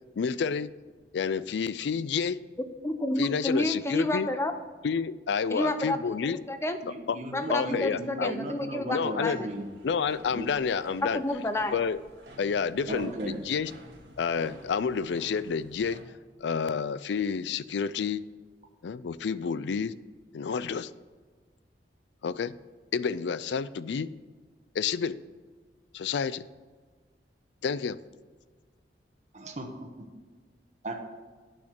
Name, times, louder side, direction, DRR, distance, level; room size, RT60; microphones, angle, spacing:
voice 1, 0.2-0.7 1.1-2.4 3.2-4.3 4.8-6.4 7.1-7.2 7.5-8.3 8.9-9.4 9.8-11.2 11.7-12.0 12.4-13.7 14.2-16.0 16.4-18.2 18.8-19.9 20.3-20.9 22.2-22.5 22.9-24.1 24.7-25.2 25.9-26.4 27.6-28.0, left 6 dB, 75° left, 17 dB, 0.4 m, -29 dB
voice 2, 2.8-4.5 5.5-6.0 6.2-6.8 7.3-9.5 11.0-11.7, left 1 dB, 15° left, 9 dB, 0.6 m, -30 dB
voice 3, 6.8-9.7 10.3-10.5 12.8-13.4 29.3-29.7 30.8-30.9, right 1 dB, 40° right, 2 dB, 1.1 m, -36 dB
sound 1, 9.5-16.0, right 1 dB, 75° right, 1.7 m, -51 dB
8.9 x 6.4 x 6.0 m, 1.4 s
head